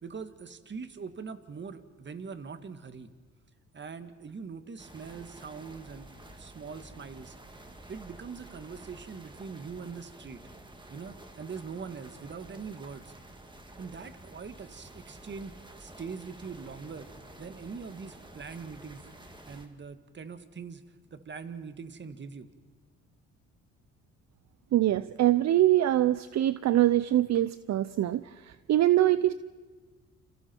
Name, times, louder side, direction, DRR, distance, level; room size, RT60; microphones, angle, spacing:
voice 1, 0.0-3.1 3.7-6.1 6.4-7.4 7.9-10.4 10.9-13.1 13.8-17.1 17.4-19.1 19.5-20.8 21.1-22.5, right 5 dB, 40° right, 9 dB, 1.8 m, -42 dB
sound 1, 4.8-19.7, right 1 dB, 15° right, 2.4 m, -50 dB
voice 2, 24.7-29.3, right 13 dB, 60° right, 14 dB, 0.7 m, -24 dB
29.0 x 28.0 x 4.6 m, 1.4 s
cardioid pair, 90°, 30 cm